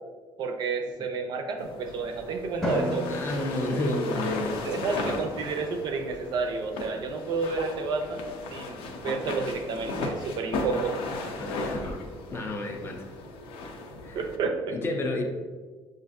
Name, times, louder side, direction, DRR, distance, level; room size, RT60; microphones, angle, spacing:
voice 1, 0.4-3.1 4.6-8.2 8.5-11.0 14.1-14.7, right 4 dB, 50° right, 4 dB, 0.5 m, -30 dB
sound 1, 1.6-14.4, left 2 dB, 75° left, 0.5 m, -36 dB
Drum, 2.6-4.9, equal, 5° left, 0.8 m, -33 dB
voice 2, 3.1-5.2 11.4-12.0 12.3-13.1 14.0-14.2 14.7-15.2, left 1 dB, 25° left, 2 dB, 0.4 m, -31 dB
6.2 x 2.5 x 2.4 m, 1.4 s
cardioid pair, 165°, 10 cm